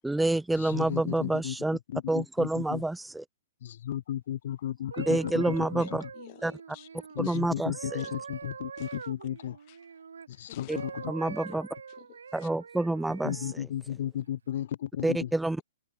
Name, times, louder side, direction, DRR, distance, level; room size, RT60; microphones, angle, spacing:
voice 1, 0.0-1.8 2.1-3.2 5.1-6.0 6.4-6.5 7.2-8.0 10.7-10.8 11.1-11.7 12.3-13.7 15.0-15.6, right 2 dB, 5° right, 0.7 m, -28 dB
voice 2, 0.5-1.6 1.9-2.8 3.6-6.1 7.1-9.6 10.3-11.1 13.2-15.3, left 11 dB, 60° left, 0.4 m, -34 dB
sound 1, 4.7-10.3 10.7-13.6 14.2-14.5, right 6 dB, 75° right, 0.8 m, -43 dB
voice 3, 5.8-6.9 7.2-7.4 8.8-9.0 9.7-9.8 10.5-10.8 11.4-11.5 11.9-12.5, left 27 dB, 40° left, 3.2 m, -52 dB
hypercardioid pair, 125°, 0 cm